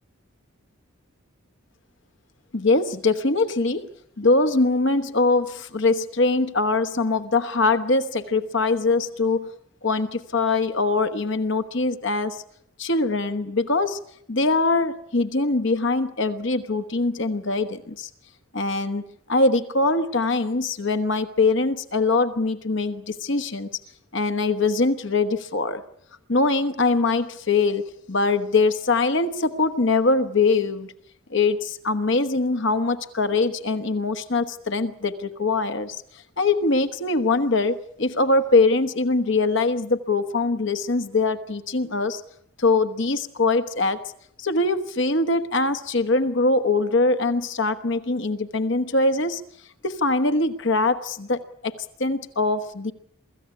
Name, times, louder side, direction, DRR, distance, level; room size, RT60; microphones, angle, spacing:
voice 1, 2.5-3.9 4.2-9.5 9.8-12.4 12.8-14.0 14.3-18.1 18.5-19.0 19.3-23.7 24.1-25.8 26.3-30.9 31.3-36.0 36.4-42.2 42.6-44.1 44.4-49.4 49.8-52.9, left 3 dB, 60° left, 9 dB, 1.2 m, -22 dB
23.5 x 14.5 x 9.7 m, 0.69 s
head